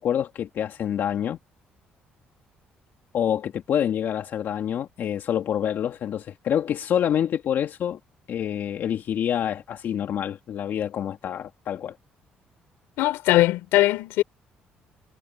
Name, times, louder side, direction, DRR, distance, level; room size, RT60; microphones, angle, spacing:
voice 1, 0.0-1.4 3.1-8.0 8.3-12.0, left 9 dB, 65° left, 2.0 m, -27 dB
voice 2, 13.0-14.2, left 16 dB, 90° left, 4.2 m, -20 dB
cardioid pair, 80°, 4 cm